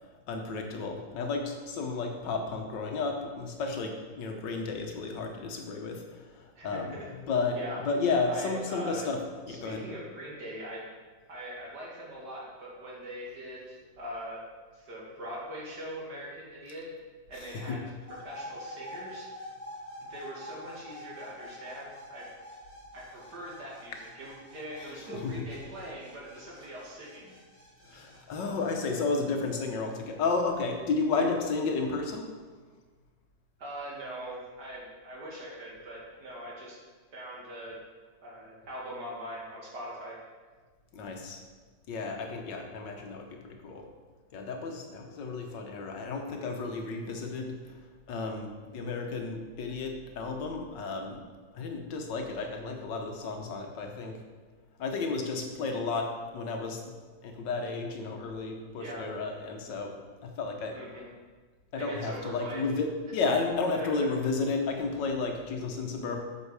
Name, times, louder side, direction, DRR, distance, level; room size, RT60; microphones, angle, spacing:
voice 1, 0.3-9.2 9.5-9.8 17.3-17.8 24.8-25.3 27.9-32.2 40.9-41.4 41.9-43.9 44.3-47.8 48.1-51.2 51.5-54.2 54.8-56.9 57.2-59.9 60.2-60.8 61.7-62.9 63.1-66.2, left 4 dB, 75° left, 3 dB, 1.7 m, -32 dB
voice 2, 6.5-7.1 7.6-7.8 8.3-9.1 9.5-10.9 11.3-14.4 14.7-16.8 17.3-17.8 18.2-19.3 20.0-22.3 22.9-27.3 31.1-31.3 33.6-36.8 37.1-37.8 38.2-40.2 58.8-59.1 60.7-61.1 61.8-62.6 63.7-63.9, equal, 60° right, -4 dB, 2.6 m, -41 dB
sound 1, 18.1-29.2, left 1 dB, 20° right, 1.8 m, -47 dB
8.3 x 6.3 x 4.8 m, 1.4 s
omnidirectional pair, 2.0 m